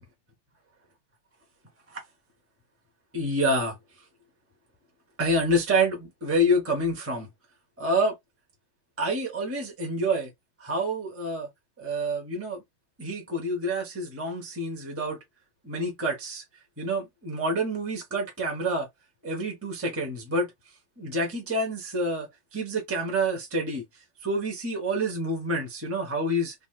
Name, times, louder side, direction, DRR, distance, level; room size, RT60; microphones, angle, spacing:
voice 1, 3.1-3.8 5.2-7.3 7.8-8.1 9.0-10.3 10.6-11.5 11.8-12.6 13.0-15.2 15.6-16.4 16.8-18.9 19.2-20.5 21.0-23.8 24.2-26.5, right 1 dB, 10° right, 1.0 m, -27 dB
3.6 x 2.5 x 2.4 m
omnidirectional pair, 2.2 m